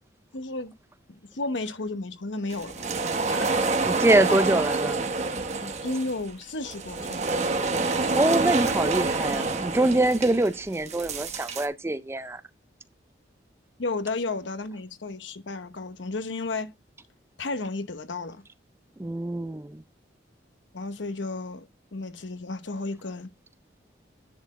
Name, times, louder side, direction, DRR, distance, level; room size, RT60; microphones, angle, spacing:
voice 1, 0.3-0.7 1.1-2.9 3.3-3.7 4.3-4.4 5.6-7.4 13.8-16.7 17.4-18.4 20.7-21.7 21.9-23.3, left 3 dB, 80° left, 1.0 m, -33 dB
sound 1, 2.5-11.7, right 3 dB, 35° right, 0.9 m, -27 dB
voice 2, 3.9-5.0 8.1-12.4 19.0-19.8, right 1 dB, 15° right, 0.4 m, -24 dB
10.5 x 4.3 x 4.2 m
head